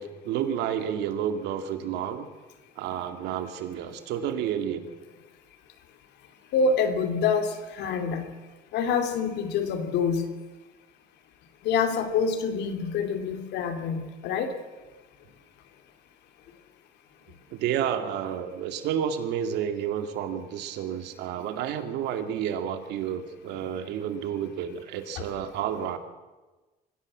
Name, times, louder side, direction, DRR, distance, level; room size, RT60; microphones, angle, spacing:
voice 1, 0.0-2.3 2.8-4.9 17.5-26.0, right 9 dB, 85° right, 7 dB, 2.3 m, -30 dB
voice 2, 6.5-8.3 8.7-10.3 11.6-14.5, left 5 dB, 85° left, 7 dB, 2.8 m, -26 dB
24.0 x 16.0 x 7.5 m, 1.2 s
cardioid pair, 110°, 17 cm